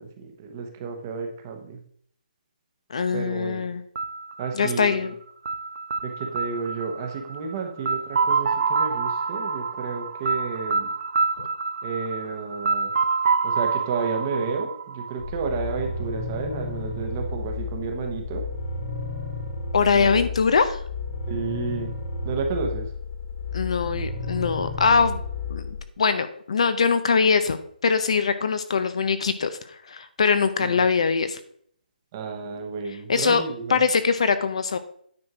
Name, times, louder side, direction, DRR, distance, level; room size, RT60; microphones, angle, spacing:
voice 1, 0.0-1.8 3.1-3.6 4.4-5.1 6.0-10.9 11.8-12.9 13.4-18.4 19.9-20.3 21.3-21.9 22.2-22.9 30.6-30.8 32.1-33.8, right 5 dB, 20° right, 4 dB, 1.0 m, -31 dB
voice 2, 2.9-3.8 4.5-5.1 11.4-11.5 19.7-20.8 23.5-25.2 25.5-31.4 33.1-33.4 33.7-34.8, left 5 dB, 40° left, 11 dB, 0.6 m, -22 dB
sound 1, 4.0-15.7, right 4 dB, 50° right, 0.8 m, -27 dB
sound 2, 15.2-25.8, left 3 dB, 85° left, 3.4 m, -32 dB
9.6 x 4.4 x 6.0 m, 0.63 s
hypercardioid pair, 180°, 5 cm